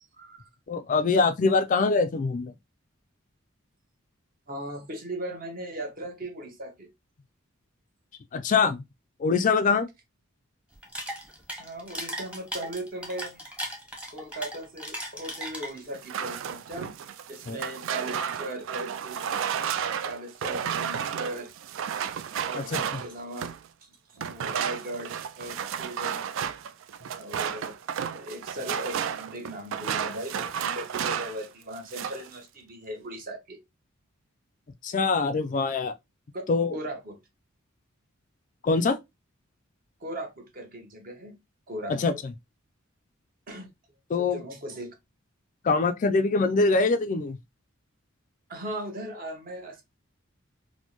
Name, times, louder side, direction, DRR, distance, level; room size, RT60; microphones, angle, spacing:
voice 1, 0.2-0.5 4.5-6.9 11.6-13.4 14.1-17.0 17.3-19.3 20.0-21.5 22.4-23.5 23.8-26.3 27.1-27.8 28.1-33.6 36.3-36.4 36.7-37.2 40.0-41.4 41.7-42.0 43.5-43.7 44.2-44.9 48.5-49.8, right 1 dB, 45° right, 1.0 m, -38 dB
voice 2, 0.7-2.5 8.3-8.8 9.2-9.9 17.5-17.6 22.5-23.0 34.8-35.9 36.5-36.8 38.6-39.0 41.9-42.3 44.1-44.4 45.6-47.4, left 4 dB, 40° left, 0.4 m, -24 dB
sound 1, 10.7-16.0, equal, 5° right, 0.9 m, -37 dB
sound 2, 15.9-23.7 24.2-31.5 31.7-32.3, right 8 dB, 65° right, 0.3 m, -32 dB
4.2 x 2.1 x 2.9 m
head